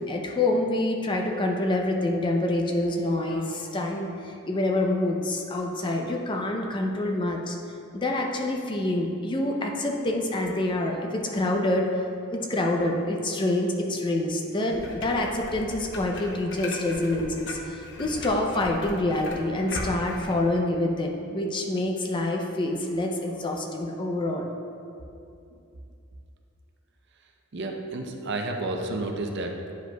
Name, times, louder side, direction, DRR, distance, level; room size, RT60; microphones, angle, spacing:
voice 1, 0.0-7.6 7.9-11.9 12.3-24.5, left 1 dB, 20° left, 1 dB, 0.5 m, -27 dB
sound 1, 14.7-20.3, left 1 dB, 60° left, 0.7 m, -38 dB
voice 2, 27.5-29.7, right 2 dB, 55° right, 3 dB, 0.5 m, -31 dB
9.2 x 5.0 x 2.2 m, 2.6 s
head